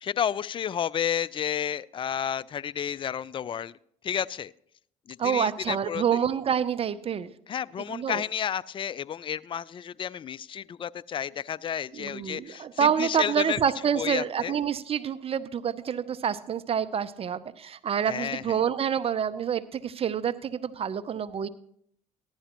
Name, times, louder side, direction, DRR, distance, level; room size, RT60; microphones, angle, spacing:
voice 1, 0.0-3.8 4.0-4.5 5.1-6.2 7.5-13.6 14.0-14.6 18.1-18.6, left 9 dB, 35° left, 20 dB, 0.4 m, -31 dB
voice 2, 5.2-7.3 7.9-8.2 11.9-21.5, right 8 dB, 40° right, 15 dB, 0.6 m, -27 dB
14.0 x 11.0 x 3.0 m, 0.67 s
hypercardioid pair, 65°, 15 cm